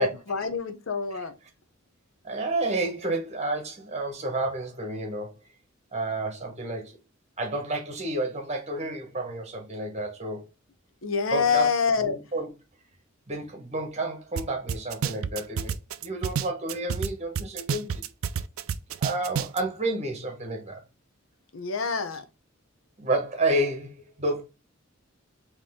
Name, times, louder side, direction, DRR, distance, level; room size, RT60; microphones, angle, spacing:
voice 1, 0.0-1.3 11.0-12.2 21.5-22.2, left 5 dB, 70° left, 0.7 m, -26 dB
voice 2, 2.2-5.4 5.9-7.0 7.4-10.5 11.3-11.7 12.0-12.5 13.3-15.7 16.0-18.0 19.0-20.8 23.0-24.4, right 2 dB, 35° right, 1.3 m, -30 dB
sound 1, 14.4-14.5 14.7-17.1 17.4-19.6, right 7 dB, 85° right, 0.4 m, -28 dB
4.1 x 3.1 x 3.6 m
head